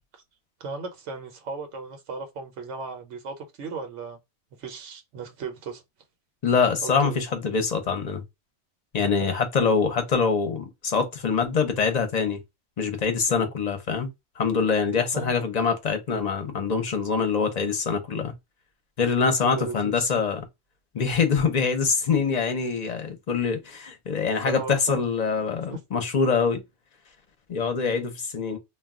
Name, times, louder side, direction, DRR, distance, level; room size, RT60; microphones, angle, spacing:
voice 1, 0.6-4.2 4.6-5.8 6.8-7.2 9.0-9.3 13.3-13.5 15.1-15.3 19.2-20.1 24.4-25.0 25.7-25.8, right 4 dB, 85° right, 1.1 m, -36 dB
voice 2, 6.4-8.2 8.9-12.4 12.8-14.1 14.4-18.3 19.0-20.4 20.9-26.6 27.5-28.6, left 5 dB, 40° left, 0.7 m, -24 dB
2.3 x 2.2 x 3.5 m
omnidirectional pair, 1.2 m